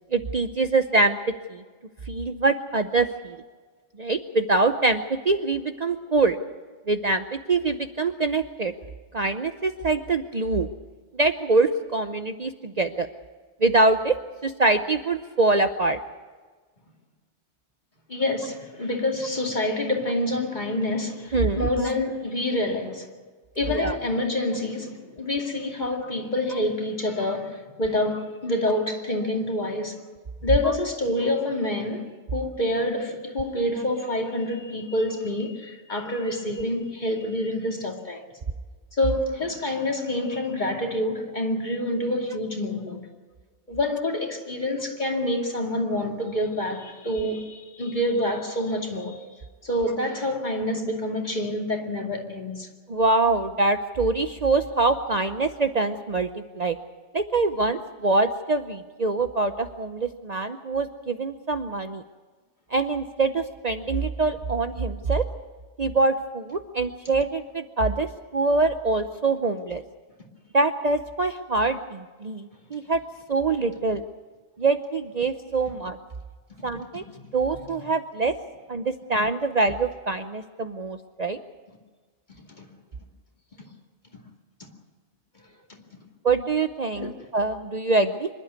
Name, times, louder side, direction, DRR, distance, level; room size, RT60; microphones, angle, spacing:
voice 1, 0.1-1.2 1.5-1.6 2.1-3.4 4.0-6.4 6.9-8.7 9.1-10.7 11.1-13.1 13.6-14.2 14.4-16.0 21.3-21.7 23.7-24.0 30.6-30.7 52.9-56.3 56.6-56.8 57.1-62.0 62.7-65.3 65.8-69.8 70.5-73.0 73.3-74.0 74.6-76.0 76.6-77.0 77.3-78.3 78.7-81.4 86.2-88.3, right 3 dB, 40° right, 0.8 m, -24 dB
voice 2, 18.1-23.1 23.6-30.0 30.4-38.3 38.9-43.1 43.7-49.2 49.6-52.7 77.2-77.8 82.3-82.7 84.6-84.7 87.0-87.1, left 1 dB, 40° left, 2.7 m, -27 dB
25.5 x 12.0 x 9.6 m
omnidirectional pair, 1.2 m